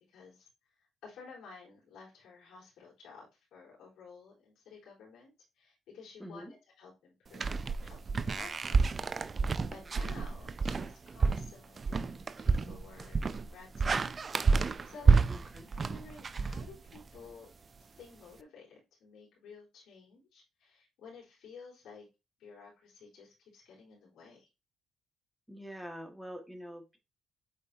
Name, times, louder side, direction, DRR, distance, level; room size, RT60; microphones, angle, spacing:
voice 1, 0.0-9.0 9.7-15.2 15.7-17.5 17.8-22.1 22.4-24.5, left 4 dB, 85° left, -4 dB, 3.8 m, -53 dB
voice 2, 6.2-6.5 15.3-15.7 25.5-27.0, equal, ahead, 3 dB, 1.7 m, -45 dB
sound 1, 7.3-17.2, right 4 dB, 35° right, 0.4 m, -29 dB
8.4 x 4.3 x 2.7 m, 0.26 s
cardioid pair, 90°, 0 cm